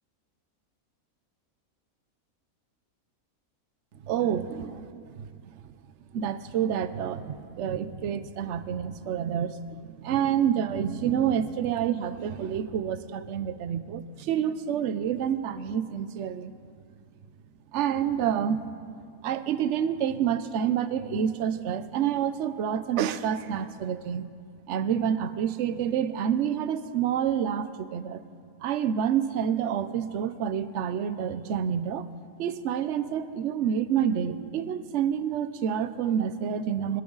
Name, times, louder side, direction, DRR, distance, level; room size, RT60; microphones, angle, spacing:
voice 1, 4.0-5.3 6.1-16.5 17.7-18.6 19.2-24.2 24.7-28.2 28.6-32.1 32.4-37.0, right 8 dB, 60° right, 12 dB, 0.9 m, -28 dB
27.5 x 12.5 x 4.0 m, 2.2 s
omnidirectional pair, 1.6 m